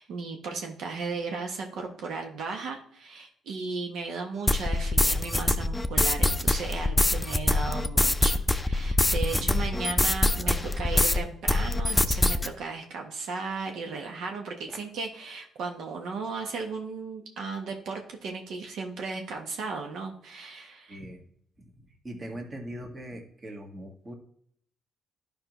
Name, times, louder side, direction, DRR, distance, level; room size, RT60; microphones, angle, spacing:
voice 1, 0.0-21.0, right 4 dB, 75° right, 2 dB, 1.0 m, -35 dB
sound 1, 4.5-11.2 11.5-12.5, left 2 dB, 10° left, 0.5 m, -24 dB
voice 2, 9.3-10.0 10.4-10.7 14.7-14.8 20.9-21.2 22.0-24.1, right 1 dB, 30° right, 2 dB, 1.6 m, -41 dB
11.5 x 5.2 x 3.0 m, 0.65 s
cardioid pair, 90°, 0 cm